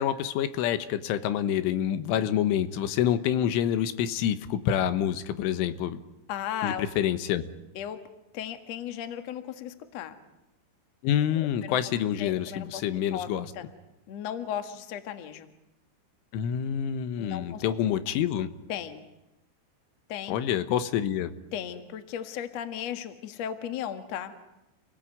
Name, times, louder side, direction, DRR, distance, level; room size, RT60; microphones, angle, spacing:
voice 1, 0.0-6.0 6.6-7.4 11.0-13.5 16.3-18.5 20.3-21.3, left 10 dB, 90° left, 12 dB, 3.7 m, -27 dB
voice 2, 6.3-6.9 7.7-8.0 8.3-10.2 11.3-11.8 12.2-12.8 13.1-13.3 13.5-13.6 14.1-15.5 17.2-17.6 18.7-19.0 20.1-20.4 21.5-24.3, left 9 dB, 60° left, 8 dB, 1.8 m, -35 dB
29.5 x 19.0 x 9.3 m, 0.96 s
omnidirectional pair, 5.5 m